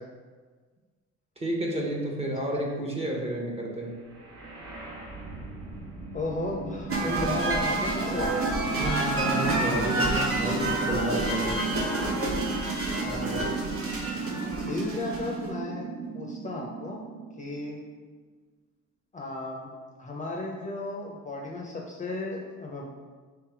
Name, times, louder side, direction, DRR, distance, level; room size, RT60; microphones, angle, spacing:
voice 1, 1.4-3.9 8.7-11.8, right 1 dB, 20° right, -2 dB, 1.0 m, -31 dB
sound 1, 4.0-17.9, right 5 dB, 85° right, 1.4 m, -36 dB
voice 2, 6.1-8.5 11.5-11.6 13.0-13.5 14.6-15.9 16.1-17.0 17.4-17.8 19.1-19.7 20.0-22.9, left 2 dB, 25° left, -1 dB, 0.6 m, -34 dB
sound 2, 6.9-15.5, right 1 dB, 50° right, 1.0 m, -29 dB
3.4 x 3.1 x 4.6 m, 1.5 s
cardioid pair, 90°, 30 cm